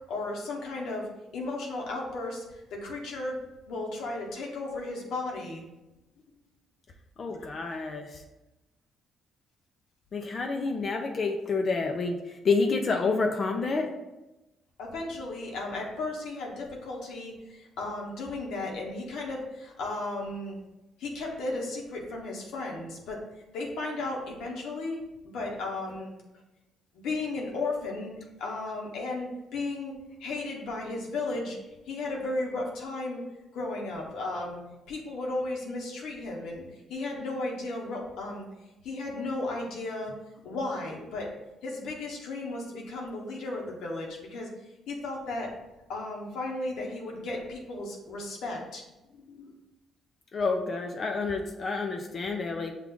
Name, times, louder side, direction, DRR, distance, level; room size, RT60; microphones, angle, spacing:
voice 1, 0.1-1.1 1.3-3.4 3.7-5.6 7.3-7.8 14.8-20.6 21.0-23.2 23.5-25.0 25.3-26.1 27.0-28.1 28.4-29.9 30.2-31.6 31.9-33.2 33.5-34.6 34.9-38.5 38.8-40.1 40.4-41.3 41.6-44.5 44.9-45.5 45.9-48.8 49.1-49.5, left 2 dB, 85° left, -1 dB, 0.9 m, -34 dB
voice 2, 7.2-8.2 10.1-13.9 50.3-52.7, left 4 dB, 45° left, 3 dB, 0.5 m, -29 dB
6.0 x 2.4 x 3.6 m, 1.0 s
cardioid pair, 90°, 0 cm